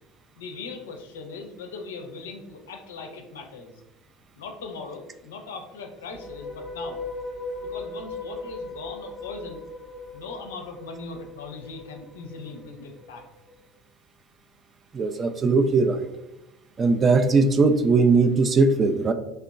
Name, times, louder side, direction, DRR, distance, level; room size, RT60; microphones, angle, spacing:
voice 1, 0.4-3.7 4.4-7.0 7.6-9.6 10.1-13.2, left 4 dB, 80° left, 4 dB, 0.4 m, -39 dB
sound 1, 6.0-13.3, left 2 dB, 20° left, 0.7 m, -38 dB
voice 2, 14.9-16.1 16.8-19.1, right 3 dB, 35° right, 8 dB, 0.3 m, -19 dB
3.2 x 2.8 x 2.2 m, 0.96 s
hypercardioid pair, 65°, 0 cm